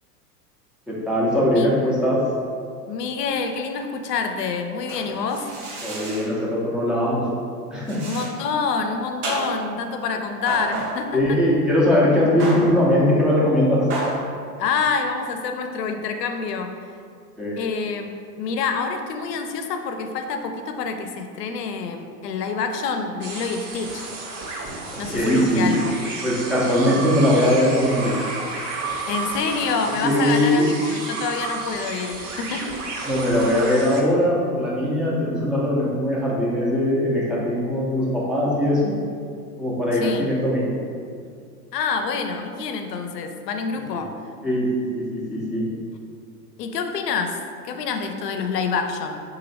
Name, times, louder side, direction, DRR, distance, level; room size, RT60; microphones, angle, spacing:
voice 1, 0.9-2.2 5.8-7.3 7.7-8.0 11.1-13.9 17.4-17.6 24.9-25.8 26.2-28.2 30.0-30.7 33.1-38.9 39.6-40.8 43.9-44.0 44.4-45.7, left 1 dB, ahead, -7 dB, 0.3 m, -20 dB
voice 2, 2.9-5.5 8.0-11.4 14.6-16.7 17.6-18.1 18.4-24.1 25.0-25.9 26.9-27.0 29.1-32.7 40.0-40.3 41.7-44.1 46.6-49.2, left 5 dB, 80° left, 6 dB, 0.6 m, -27 dB
sound 1, 4.9-6.4 7.9-8.4 9.2-9.8 10.5-11.2 12.4-12.9 13.9-14.3, right 2 dB, 70° right, 0.9 m, -31 dB
sound 2, 23.2-34.0, right 3 dB, 35° right, 0.6 m, -32 dB
3.0 x 2.6 x 4.0 m, 2.2 s
hypercardioid pair, 100°, 48 cm